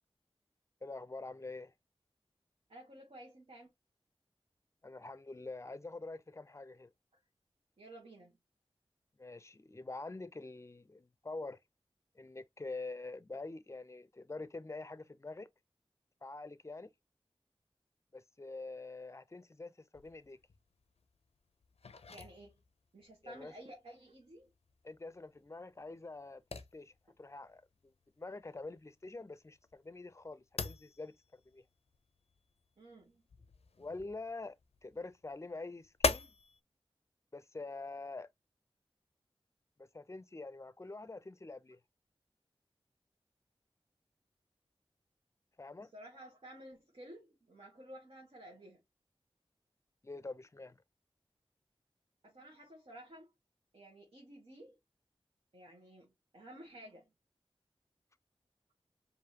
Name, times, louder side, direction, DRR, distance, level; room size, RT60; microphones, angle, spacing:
voice 1, 0.8-1.7 4.8-6.9 9.2-11.6 12.1-15.5 16.2-16.9 18.1-20.4 23.2-23.5 24.8-26.9 27.2-31.6 33.8-34.6 34.8-36.3 37.3-38.3 39.8-41.8 45.6-45.9 50.0-50.8, left 3 dB, 30° left, 0.5 m, -46 dB
voice 2, 2.7-3.7 7.8-8.4 22.1-22.6 22.9-24.5 32.8-33.2 45.8-48.8 52.2-53.3 53.7-54.8 55.5-57.1, right 1 dB, 70° right, 1.2 m, -53 dB
sound 1, 19.9-36.6, left 4 dB, 85° left, 0.5 m, -43 dB
4.8 x 2.7 x 2.8 m
wide cardioid pair, 45°, 10 cm